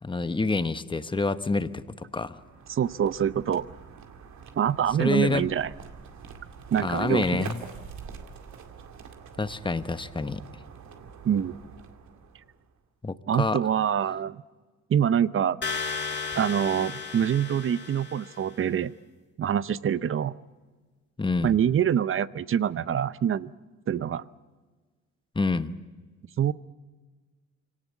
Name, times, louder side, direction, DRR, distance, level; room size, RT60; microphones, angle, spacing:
voice 1, 0.0-2.4 5.0-5.5 6.8-7.6 9.4-10.4 13.0-13.6 21.2-21.6 25.3-25.7, left 3 dB, 15° left, 11 dB, 1.0 m, -27 dB
sound 1, 2.0-12.8, right 6 dB, 70° right, 2.2 m, -45 dB
voice 2, 2.7-3.7 4.6-5.7 6.7-7.5 11.2-11.6 13.3-14.4 14.9-15.6 16.3-18.9 19.4-20.4 21.4-23.5 23.9-24.2 26.4-26.5, right 9 dB, 45° right, 16 dB, 0.7 m, -25 dB
sound 2, 15.6-18.5, left 5 dB, 35° left, 1.8 m, -34 dB
25.0 x 18.0 x 8.4 m, 1.4 s
cardioid pair, 90°, 30 cm